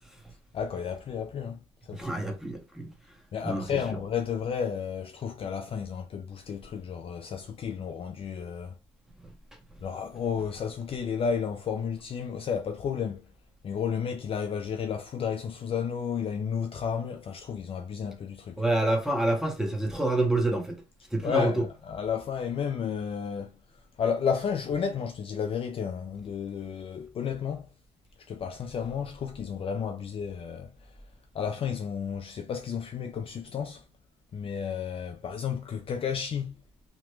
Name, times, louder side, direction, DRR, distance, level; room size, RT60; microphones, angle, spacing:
voice 1, 0.5-2.1 3.3-8.7 9.8-13.2 13.6-18.6 21.2-23.5 24.0-27.7 28.3-30.7 31.3-33.8 34.3-36.6, left 7 dB, 40° left, 0.4 m, -32 dB
voice 2, 1.9-2.9 3.4-3.6 18.6-20.8 21.1-21.6, right 2 dB, 5° right, 1.0 m, -27 dB
2.9 x 2.1 x 3.0 m
hypercardioid pair, 60°, 15 cm